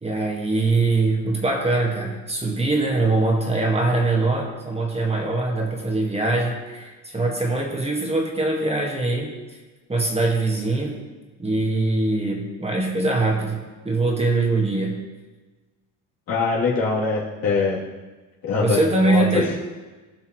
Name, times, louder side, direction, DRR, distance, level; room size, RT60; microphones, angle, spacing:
voice 1, 0.0-9.3 9.9-11.0 11.4-15.0 18.6-19.6, right 2 dB, 15° right, 0 dB, 1.7 m, -22 dB
voice 2, 16.3-17.8 18.4-19.2, left 4 dB, 65° left, -6 dB, 3.1 m, -23 dB
16.5 x 5.7 x 3.1 m, 1.2 s
cardioid pair, 95°, 38 cm